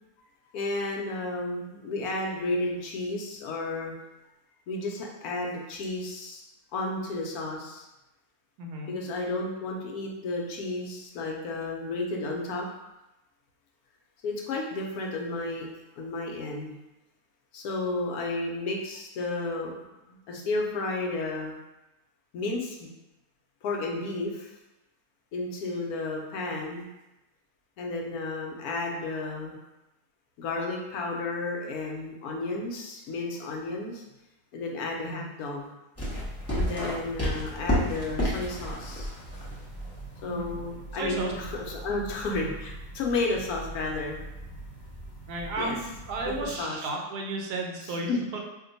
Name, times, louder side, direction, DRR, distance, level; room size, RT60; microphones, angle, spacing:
voice 1, 0.5-3.9 4.7-6.4 6.7-7.9 8.9-12.7 14.2-15.7 16.0-16.8 17.5-19.7 20.1-21.5 22.3-22.9 23.6-24.5 25.3-26.9 27.8-29.6 30.4-34.0 34.5-35.7 36.5-39.1 40.2-44.2 45.6-45.7 46.2-46.3 46.6-46.8 48.1-48.2, left 2 dB, 75° left, 0 dB, 1.0 m, -32 dB
voice 2, 8.6-8.9 35.0-35.3 40.3-40.5 40.9-41.3 45.3-48.4, right 2 dB, 80° right, 0 dB, 1.1 m, -33 dB
sound 1, 36.0-46.6, equal, 20° left, 0.4 m, -34 dB
2.9 x 2.2 x 3.8 m, 0.96 s
omnidirectional pair, 1.7 m